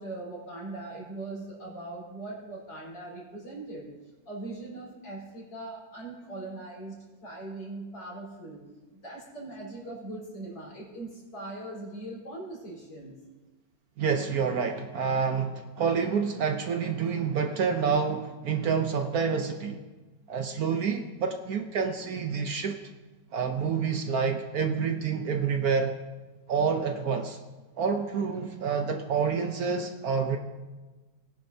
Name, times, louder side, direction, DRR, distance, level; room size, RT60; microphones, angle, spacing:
voice 1, 0.0-3.9 4.3-8.6 8.9-13.2, right 2 dB, 70° left, -5 dB, 5.1 m, -40 dB
voice 2, 14.0-19.8 20.3-22.8 23.3-25.9 26.5-27.4 27.8-30.4, right 6 dB, 65° right, 5 dB, 1.1 m, -28 dB
20.5 x 10.0 x 2.7 m, 1.2 s
omnidirectional pair, 2.0 m